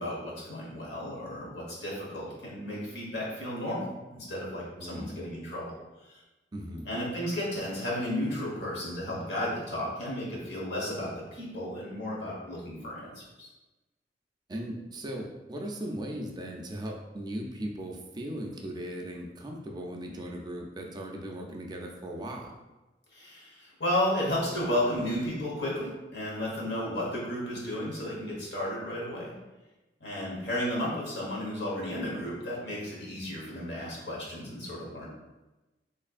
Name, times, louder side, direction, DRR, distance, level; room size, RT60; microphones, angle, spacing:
voice 1, 0.0-5.7 6.1-6.2 6.8-13.5 23.1-29.3 30.0-35.1, left 1 dB, 70° left, -5 dB, 1.4 m, -33 dB
voice 2, 4.8-5.1 6.5-6.9 14.5-22.5, right 1 dB, 25° right, 0 dB, 0.4 m, -38 dB
3.6 x 3.2 x 2.4 m, 1.1 s
head